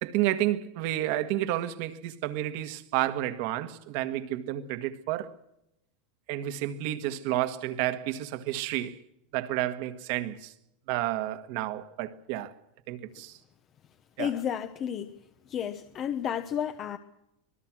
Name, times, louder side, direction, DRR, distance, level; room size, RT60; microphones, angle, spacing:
voice 1, 0.0-5.4 6.3-9.0 9.3-10.5 10.9-12.5 12.9-13.4 14.2-14.3, right 14 dB, 50° right, 1.7 m, -30 dB
voice 2, 14.2-15.1 15.5-17.0, left 9 dB, 30° left, 1.0 m, -31 dB
25.5 x 20.5 x 6.2 m
supercardioid pair, 165°, 0 cm